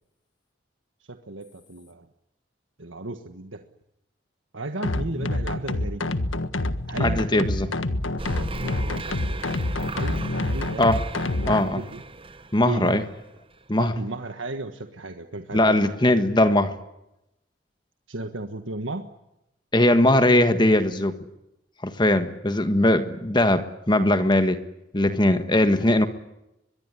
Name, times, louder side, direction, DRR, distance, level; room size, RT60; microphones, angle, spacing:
voice 1, 1.1-2.1 2.8-3.6 4.5-6.2 6.9-7.7 8.5-9.4 9.9-11.0 11.4-12.0 12.6-13.0 13.8-15.8 18.1-19.0, right 2 dB, 80° right, 7 dB, 1.5 m, -35 dB
sound 1, 4.8-11.6, left 2 dB, 85° left, 1.6 m, -27 dB
voice 2, 7.0-7.7 10.8-11.0 11.5-11.8 12.5-13.0 13.7-13.9 15.5-16.8 19.7-21.2 21.8-24.6 24.9-26.1, left 1 dB, 25° left, 9 dB, 1.6 m, -20 dB
sound 2, 8.2-13.6, right 2 dB, 30° right, 1.1 m, -37 dB
23.5 x 22.5 x 9.9 m, 0.86 s
head